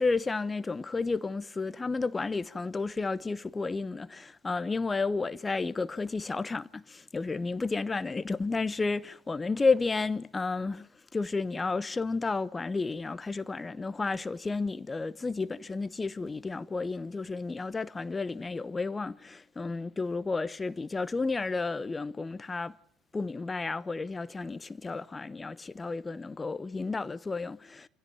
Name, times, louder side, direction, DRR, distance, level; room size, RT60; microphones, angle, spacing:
voice 1, 0.0-10.9 11.1-22.7 23.1-27.9, left 3 dB, 20° left, 0.9 m, -32 dB
27.0 x 16.0 x 9.5 m
figure-of-eight pair, 65°, 0 cm